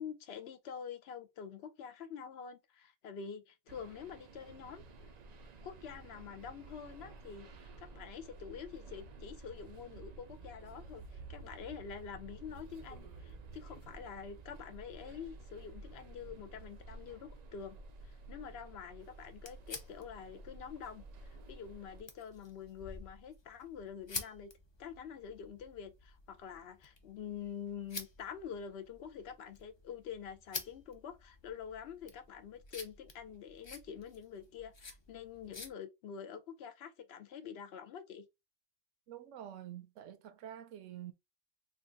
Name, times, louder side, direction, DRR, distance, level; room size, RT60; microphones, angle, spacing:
voice 1, 0.0-4.8 5.6-17.8 18.0-24.5 24.8-38.3, left 7 dB, 65° left, 0.8 m, -47 dB
sound 1, 3.7-22.0, right 3 dB, 65° right, 0.4 m, -52 dB
sound 2, 19.0-35.7, left 4 dB, 40° left, 0.4 m, -50 dB
voice 2, 39.1-41.1, right 11 dB, 80° right, 0.9 m, -47 dB
3.0 x 2.3 x 3.8 m
omnidirectional pair, 1.3 m